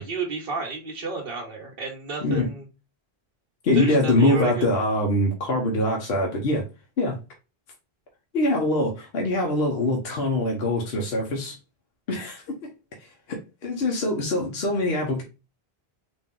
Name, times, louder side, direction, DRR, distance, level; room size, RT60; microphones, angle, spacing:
voice 1, 0.0-2.7 3.7-4.6, right 4 dB, 65° right, -1 dB, 1.1 m, -32 dB
voice 2, 3.6-6.6 7.0-7.2 8.3-11.5 12.1-12.7 13.3-15.2, left 1 dB, 75° left, 0 dB, 1.1 m, -23 dB
4.0 x 2.7 x 3.6 m, 0.30 s
omnidirectional pair, 1.0 m